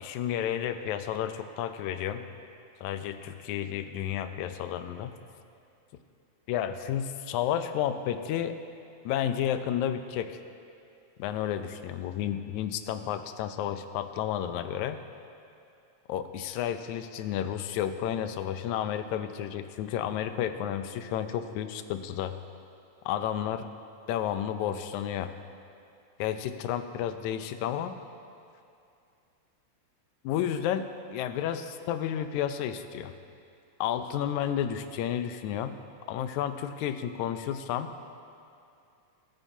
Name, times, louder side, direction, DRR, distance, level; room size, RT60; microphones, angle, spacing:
voice 1, 0.0-2.2 2.8-5.1 6.5-8.6 9.1-10.4 11.2-15.0 16.1-22.4 23.1-23.7 24.1-25.3 26.2-28.0 30.2-33.1 33.8-35.8 36.1-37.9, left 10 dB, 85° left, 9 dB, 2.0 m, -31 dB
21.0 x 8.9 x 2.7 m, 2.5 s
omnidirectional pair, 3.3 m